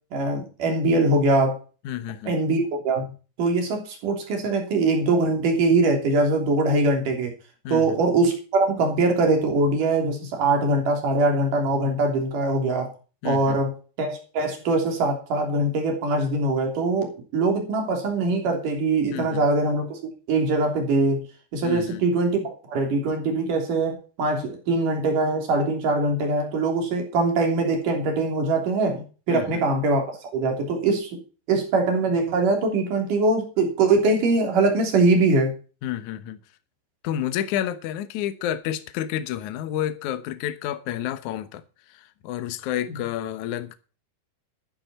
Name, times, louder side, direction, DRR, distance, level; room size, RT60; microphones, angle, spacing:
voice 1, 0.1-1.6 2.3-3.1 3.4-7.3 7.7-12.9 13.2-13.7 14.0-20.0 20.3-21.2 21.5-22.4 22.7-31.2 31.5-35.5 42.9-43.0, right 2 dB, 50° right, 4.5 m, -22 dB
voice 2, 1.8-2.3 7.6-8.0 13.2-13.6 19.1-19.4 21.6-22.0 29.3-29.6 35.8-36.4 37.0-41.6 41.9-43.7, left 11 dB, 70° left, 1.8 m, -30 dB
14.0 x 10.5 x 4.3 m
omnidirectional pair, 5.0 m